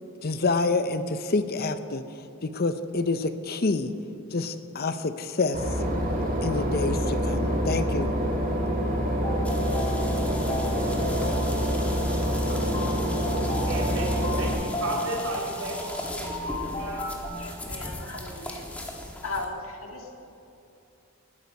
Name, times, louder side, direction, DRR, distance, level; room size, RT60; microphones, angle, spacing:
voice 1, 0.2-2.0 2.4-3.9 4.3-5.6 6.4-8.2, left 3 dB, 45° left, 11 dB, 0.6 m, -27 dB
Boat Water vehicle / Engine, 5.5-14.5, equal, 40° right, 2.2 m, -26 dB
sound 1, 9.1-17.3, left 1 dB, 25° left, 2.4 m, -35 dB
sound 2, 9.4-19.4, left 1 dB, 5° left, 1.3 m, -38 dB
voice 2, 13.4-17.0, right 1 dB, 80° right, -2 dB, 4.1 m, -35 dB
voice 3, 17.4-18.6 19.2-20.1, left 3 dB, 70° left, 2 dB, 2.0 m, -37 dB
19.5 x 9.2 x 5.3 m, 2.9 s
head